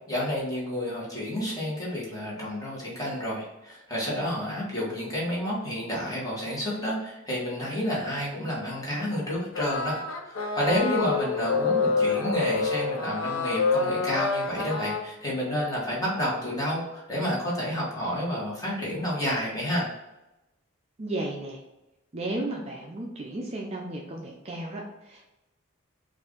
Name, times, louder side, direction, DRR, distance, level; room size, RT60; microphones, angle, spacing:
voice 1, 0.1-19.8, equal, 15° left, -6 dB, 1.5 m, -30 dB
sound 1, 9.5-15.0, left 4 dB, 90° left, 0.7 m, -27 dB
voice 2, 21.0-21.6 22.1-25.2, right 1 dB, 30° right, 0 dB, 0.4 m, -34 dB
4.4 x 2.6 x 3.7 m, 0.97 s
head